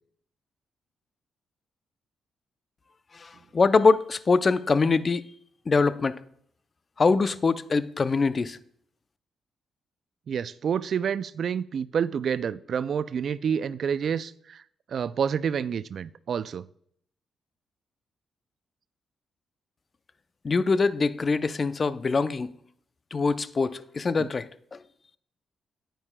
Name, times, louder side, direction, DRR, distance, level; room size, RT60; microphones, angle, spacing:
voice 1, 3.2-5.3 5.7-6.2 7.0-8.6 20.4-22.5 23.1-24.5, left 4 dB, 45° left, 0.5 m, -23 dB
voice 2, 10.3-14.6 14.9-16.7, right 7 dB, 65° right, 0.3 m, -28 dB
9.5 x 9.1 x 2.2 m
supercardioid pair, 50°, 0 cm